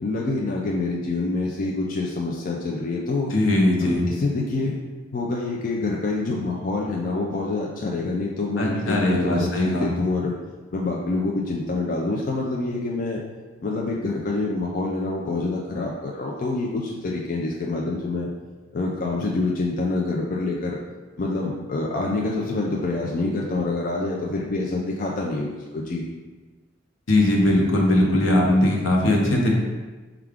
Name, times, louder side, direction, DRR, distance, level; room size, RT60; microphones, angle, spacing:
voice 1, 0.0-3.3 3.8-4.8 5.1-10.4 10.7-13.2 13.6-18.3 18.7-20.8 21.2-26.0, left 2 dB, 45° left, -2 dB, 0.4 m, -26 dB
voice 2, 3.3-4.1 8.6-9.9 27.1-29.5, left 1 dB, 75° left, -1 dB, 0.8 m, -20 dB
4.6 x 2.4 x 3.5 m, 1.3 s
head